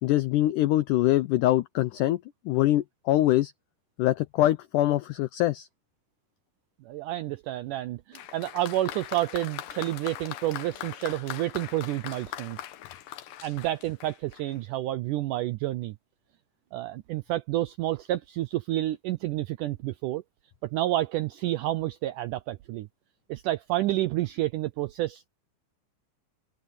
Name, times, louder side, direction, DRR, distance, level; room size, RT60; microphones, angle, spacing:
voice 1, 0.0-3.5 4.0-5.7, left 14 dB, 85° left, 1.8 m, -24 dB
voice 2, 6.8-12.6 13.4-15.9 16.7-20.2 20.6-22.9 23.3-25.3, right 15 dB, 85° right, 1.8 m, -29 dB
Applause, 8.1-14.6, left 12 dB, 70° left, 2.6 m, -41 dB
open air
omnidirectional pair, 4.4 m